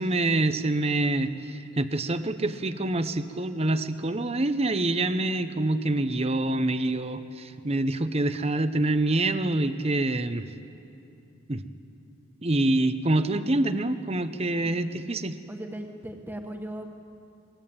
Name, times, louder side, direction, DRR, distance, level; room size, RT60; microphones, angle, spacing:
voice 1, 0.0-10.5 11.5-11.6 12.4-15.4, right 2 dB, 30° right, 11 dB, 0.8 m, -26 dB
voice 2, 15.5-16.9, right 1 dB, 10° right, 4 dB, 1.5 m, -38 dB
23.0 x 20.0 x 9.0 m, 2.7 s
head